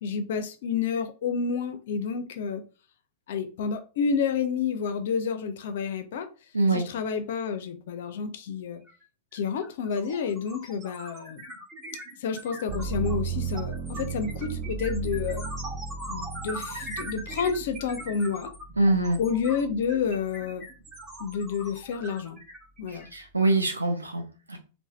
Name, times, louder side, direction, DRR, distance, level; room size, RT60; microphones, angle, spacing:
voice 1, 0.0-2.6 3.3-6.3 6.7-8.8 9.3-11.4 12.2-15.5 16.1-18.5 19.2-20.6 21.2-22.4 22.8-23.1, left 6 dB, 60° left, 0.4 m, -29 dB
voice 2, 6.5-6.9 18.8-19.2 23.1-24.6, right 2 dB, 90° right, 0.7 m, -24 dB
sound 1, 8.9-9.0 9.3-23.7, right 1 dB, 20° right, 1.2 m, -41 dB
sound 2, 12.7-20.5 21.0-21.8, right 5 dB, 45° right, 0.3 m, -36 dB
3.2 x 2.0 x 2.3 m
figure-of-eight pair, 100°, 0 cm